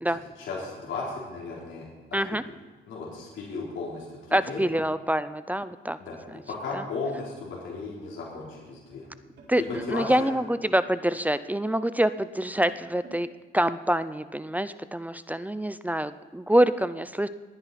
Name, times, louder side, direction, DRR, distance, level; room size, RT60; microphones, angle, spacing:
voice 1, 0.1-1.9 2.9-4.7 6.0-6.2 6.5-9.1 9.6-10.3, left 4 dB, 70° left, -5 dB, 3.6 m, -35 dB
voice 2, 4.3-6.0 9.5-9.6 9.9-13.3 13.5-17.3, right 1 dB, 10° right, 14 dB, 0.5 m, -26 dB
sound 1, 5.3-13.3, right 4 dB, 60° right, 4.5 m, -53 dB
20.5 x 9.7 x 4.2 m, 1.3 s
cardioid pair, 90°, 20 cm